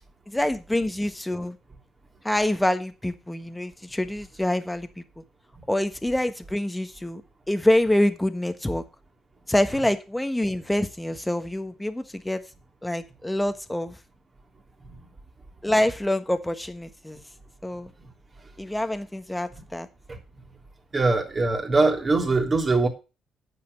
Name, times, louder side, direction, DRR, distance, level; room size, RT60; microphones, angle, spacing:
voice 1, 0.3-1.6 2.2-5.2 5.7-7.2 7.5-8.8 9.5-12.4 12.8-14.0 15.6-17.2 17.6-17.9 18.6-19.9, left 1 dB, 10° left, 9 dB, 1.4 m, -26 dB
voice 2, 20.9-22.9, right 3 dB, 30° right, 4 dB, 3.4 m, -22 dB
9.5 x 6.9 x 6.9 m, 0.30 s
cardioid pair, 90°, 0 cm